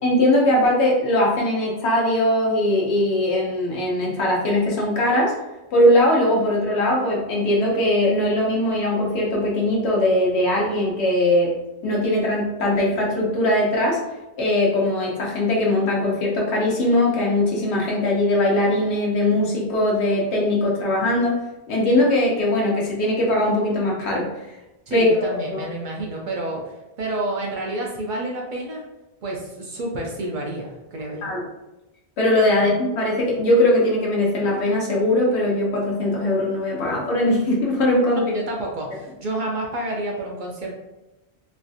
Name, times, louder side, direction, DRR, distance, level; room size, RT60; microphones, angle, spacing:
voice 1, 0.0-5.3 5.7-11.5 11.8-14.0 14.4-21.4 21.7-24.3 24.9-25.2 25.5-25.6 31.2-31.4 32.2-38.2, left 1 dB, 80° left, -2 dB, 1.1 m, -20 dB
voice 2, 24.9-28.8 29.2-31.3 32.6-32.7 38.3-40.7, right 1 dB, 60° right, -1 dB, 0.6 m, -29 dB
3.2 x 2.4 x 2.6 m, 1.0 s
omnidirectional pair, 1.1 m